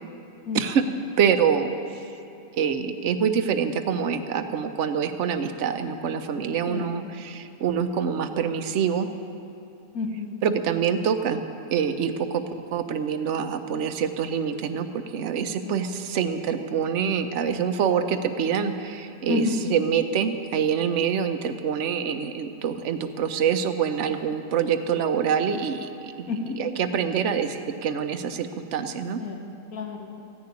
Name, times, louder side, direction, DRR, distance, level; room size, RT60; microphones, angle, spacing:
voice 1, 1.2-2.0 2.6-9.1 10.4-11.4 11.7-12.4 12.7-26.3 26.6-29.2, right 7 dB, 60° right, 8 dB, 1.0 m, -25 dB
voice 2, 9.9-10.3 15.6-16.0 19.3-19.6 26.3-26.5 29.2-29.4 29.7-30.2, left 4 dB, 80° left, 3 dB, 1.6 m, -30 dB
15.0 x 6.7 x 9.4 m, 2.7 s
omnidirectional pair, 1.5 m